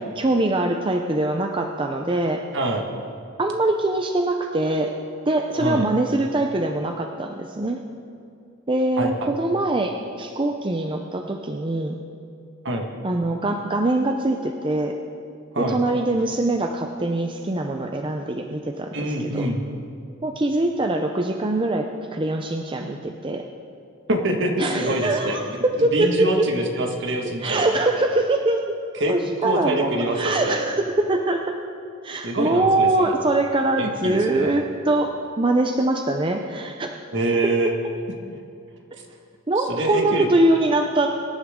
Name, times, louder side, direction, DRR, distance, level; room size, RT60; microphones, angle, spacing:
voice 1, 0.2-2.5 3.4-4.9 5.3-7.8 8.7-12.0 13.0-15.0 15.6-19.0 19.2-19.5 20.2-23.5 24.6-26.5 27.4-28.6 29.1-31.6 32.0-37.0 39.5-41.1, right 2 dB, 25° right, 4 dB, 0.6 m, -23 dB
voice 2, 2.5-2.9 5.6-5.8 9.0-9.3 12.6-12.9 15.5-15.8 18.9-19.6 24.1-27.7 28.9-29.2 29.4-30.6 32.2-33.2 33.8-34.6 37.1-37.7 39.7-40.3, right 1 dB, 60° right, 2 dB, 1.7 m, -25 dB
23.5 x 11.0 x 3.7 m, 2.5 s
head